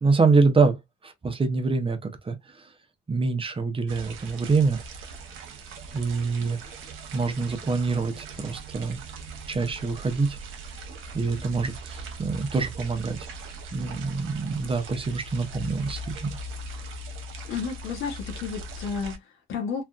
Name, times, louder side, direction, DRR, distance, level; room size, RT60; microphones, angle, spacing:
voice 1, 0.0-2.4 3.1-4.8 5.9-6.6 7.1-9.0 9.5-10.4 11.1-13.2 13.7-16.3, right 4 dB, 25° right, 0.8 m, -25 dB
sound 1, 3.9-19.2, right 2 dB, 85° right, 0.8 m, -40 dB
voice 2, 17.5-19.8, left 6 dB, 90° left, 0.9 m, -32 dB
3.3 x 2.4 x 2.4 m
cardioid pair, 90°, 20 cm